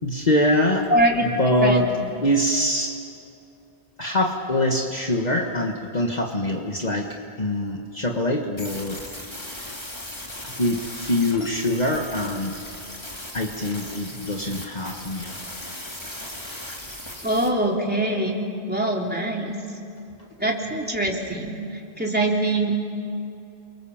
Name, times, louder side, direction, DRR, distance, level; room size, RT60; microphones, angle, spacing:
voice 1, 0.0-0.9 1.2-1.9 2.2-3.0 4.0-9.0 9.4-9.8 10.6-12.6 13.3-15.3, left 1 dB, 45° left, 1 dB, 1.7 m, -24 dB
voice 2, 0.9-1.3 1.6-1.8 17.2-19.6 20.4-22.7, right 1 dB, 10° right, -1 dB, 3.3 m, -23 dB
sound 1, 8.6-17.5, left 1 dB, 25° left, 2.8 m, -37 dB
29.0 x 24.5 x 7.3 m, 2.6 s
omnidirectional pair, 1.0 m